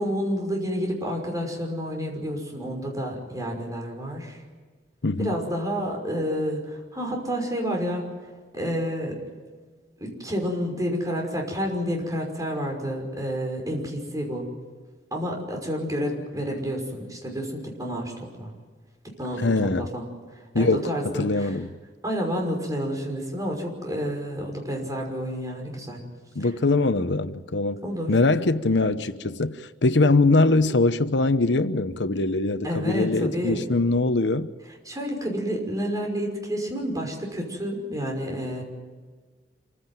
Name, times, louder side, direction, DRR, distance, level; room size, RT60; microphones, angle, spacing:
voice 1, 0.0-4.4 5.2-8.2 8.5-9.2 10.0-14.5 15.1-18.5 19.2-20.1 20.5-21.5 22.0-26.0 27.8-28.1 32.6-33.6 34.9-38.6, equal, 20° right, 5.8 m, -29 dB
voice 2, 5.0-5.3 19.4-19.9 20.5-21.7 26.4-27.8 28.1-34.5, left 2 dB, 90° left, 0.9 m, -22 dB
26.5 x 16.0 x 9.2 m
head